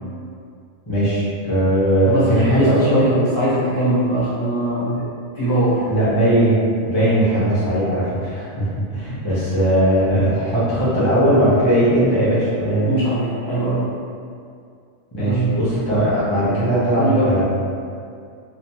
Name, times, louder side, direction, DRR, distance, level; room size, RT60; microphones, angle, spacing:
voice 1, 0.9-3.1 4.9-5.0 5.8-12.9 15.1-17.4, right 1 dB, 25° left, -9 dB, 0.5 m, -19 dB
voice 2, 2.0-5.1 5.4-5.9 12.9-13.9 15.2-15.5 17.0-17.4, right 1 dB, 60° left, -9 dB, 0.9 m, -21 dB
2.8 x 2.1 x 2.7 m, 2.3 s
omnidirectional pair, 1.4 m